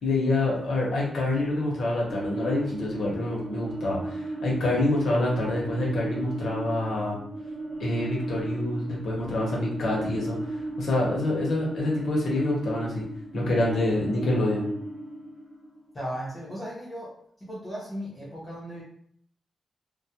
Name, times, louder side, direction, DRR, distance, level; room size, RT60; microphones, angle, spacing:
voice 1, 0.0-7.2 7.8-10.4 10.8-13.0 13.3-14.7, left 2 dB, 75° left, -3 dB, 0.8 m, -26 dB
sound 1, 2.1-16.2, right 2 dB, 20° right, 0.6 m, -36 dB
voice 2, 15.9-17.1 17.4-18.8, equal, 20° left, -8 dB, 0.6 m, -36 dB
2.3 x 2.0 x 2.7 m, 0.64 s
wide cardioid pair, 140°, 0 cm